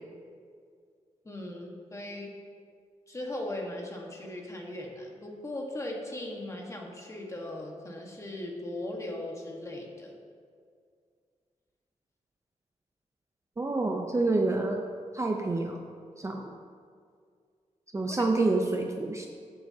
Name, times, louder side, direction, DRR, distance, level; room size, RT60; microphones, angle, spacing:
voice 1, 1.2-2.3 3.1-10.2 18.1-18.3, left 1 dB, 25° left, 0 dB, 1.4 m, -38 dB
voice 2, 13.6-14.8 15.1-15.8 16.2-16.5 17.9-19.3, right 2 dB, 25° right, 2 dB, 0.6 m, -28 dB
15.0 x 7.8 x 2.8 m, 2.1 s
wide cardioid pair, 130°, 13 cm